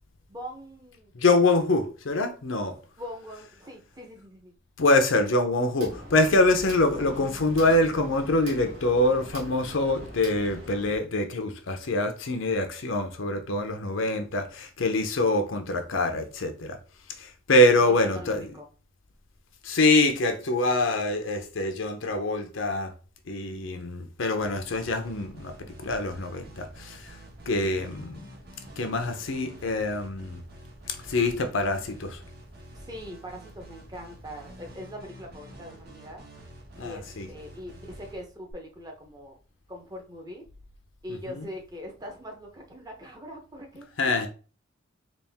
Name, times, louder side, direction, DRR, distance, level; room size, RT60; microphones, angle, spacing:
voice 1, 0.3-1.1 2.7-4.5 13.8-14.2 17.6-18.7 32.7-36.2 36.8-39.4 39.7-40.5 41.0-44.3, equal, 20° right, 0.8 m, -42 dB
voice 2, 1.1-2.7 4.8-16.8 17.2-18.5 19.6-22.9 23.3-27.2 27.5-28.2 28.8-30.4 30.9-32.2 36.8-37.3 41.3-41.5 44.0-44.3, left 2 dB, 70° left, 0.7 m, -25 dB
sound 1, 5.8-11.0, equal, 80° right, 1.3 m, -42 dB
sound 2, 24.4-38.5, right 1 dB, 50° right, 1.0 m, -48 dB
4.1 x 2.5 x 3.5 m
head